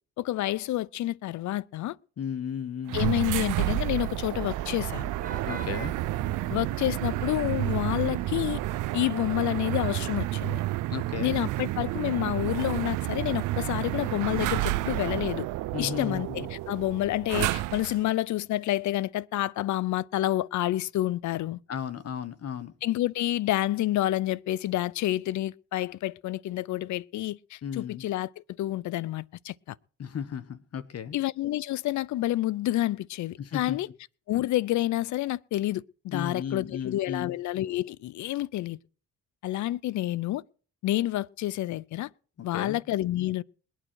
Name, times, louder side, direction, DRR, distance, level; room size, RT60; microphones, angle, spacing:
voice 1, 0.2-2.0 2.9-5.1 6.5-8.6 8.9-10.6 11.2-15.5 15.8-21.6 22.8-28.3 28.6-29.7 31.1-33.9 34.3-38.8 39.4-40.4 40.8-42.1 42.4-43.4, left 15 dB, 70° left, 0.6 m, -29 dB
voice 2, 2.2-3.0 5.5-6.0 10.9-11.4 15.7-16.5 21.7-22.7 27.6-28.1 30.0-31.2 33.4-33.8 36.1-37.3 42.4-42.8, left 8 dB, 55° left, 1.3 m, -35 dB
sound 1, 2.9-18.1, right 18 dB, 90° right, 0.5 m, -30 dB
Vehicle horn car horn honking / Traffic noise roadway noise, 3.5-8.9, right 5 dB, 30° right, 1.7 m, -41 dB
21.0 x 9.1 x 4.6 m
cardioid pair, 90°, 30 cm